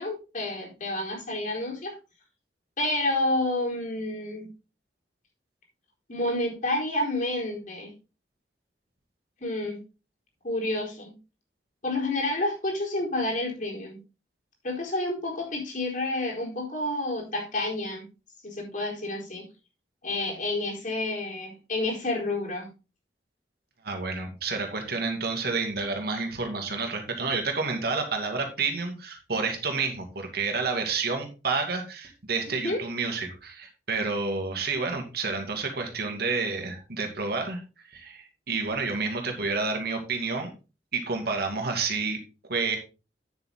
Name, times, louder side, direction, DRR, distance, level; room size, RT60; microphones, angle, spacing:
voice 1, 0.0-1.9 2.8-4.5 6.1-7.9 9.4-9.8 10.4-11.1 11.8-14.0 14.6-18.1 18.4-19.4 20.0-22.7 32.6-32.8, left 2 dB, 45° left, -1 dB, 4.2 m, -29 dB
voice 2, 23.8-37.6 37.9-40.5 40.9-42.2 42.5-42.8, right 4 dB, 60° right, 3 dB, 2.5 m, -29 dB
9.6 x 7.2 x 3.8 m, 0.32 s
head